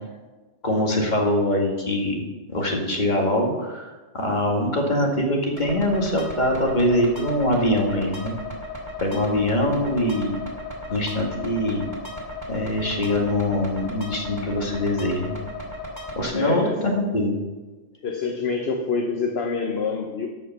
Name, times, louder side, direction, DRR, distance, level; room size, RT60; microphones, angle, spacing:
voice 1, 0.6-2.2 2.5-8.3 9.0-10.4 10.9-11.8 12.5-15.4 16.2-17.4, left 1 dB, 35° left, 0 dB, 2.1 m, -23 dB
sound 1, 5.6-16.2, left 2 dB, 20° right, 2.7 m, -35 dB
voice 2, 16.3-16.9 18.0-20.3, left 5 dB, 60° left, 3 dB, 1.1 m, -26 dB
12.5 x 5.7 x 6.6 m, 1.2 s
omnidirectional pair, 1.3 m